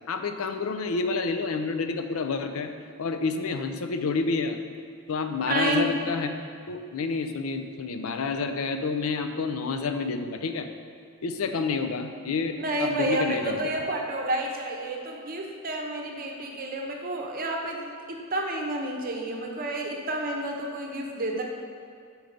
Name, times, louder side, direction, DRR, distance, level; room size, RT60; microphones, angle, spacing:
voice 1, 0.1-2.7 3.0-4.6 5.1-6.3 6.7-10.7 11.2-12.5 12.8-13.6, left 4 dB, 75° left, 7 dB, 0.5 m, -29 dB
voice 2, 5.5-5.9 11.6-11.7 12.6-21.4, right 1 dB, 40° right, 1 dB, 0.7 m, -30 dB
5.3 x 4.6 x 5.1 m, 2.2 s
head